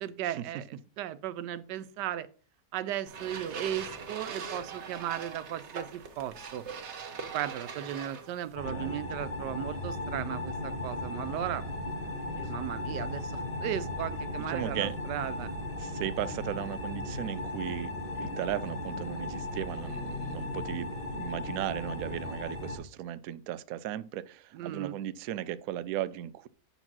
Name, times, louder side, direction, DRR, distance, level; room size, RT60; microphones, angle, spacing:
voice 1, 0.0-2.3 2.7-6.6 7.3-11.6 12.4-15.5 24.5-25.0, right 11 dB, 90° right, 1.2 m, -36 dB
sound 1, 3.1-8.6, right 5 dB, 50° right, 1.1 m, -41 dB
sound 2, 8.6-22.8, left 2 dB, 90° left, 5.2 m, -36 dB
voice 2, 14.5-15.0 15.8-26.5, right 12 dB, 70° right, 0.9 m, -36 dB
7.8 x 4.1 x 6.0 m
omnidirectional pair, 1.8 m